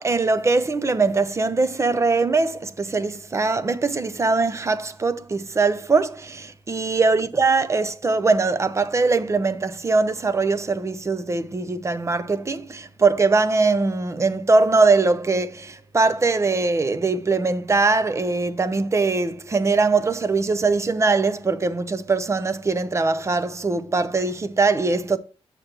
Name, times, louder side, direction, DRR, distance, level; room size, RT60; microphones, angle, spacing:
voice 1, 0.0-25.2, right 3 dB, 30° right, 0.6 m, -21 dB
7.5 x 6.6 x 2.9 m
wide cardioid pair, 125°, 10 cm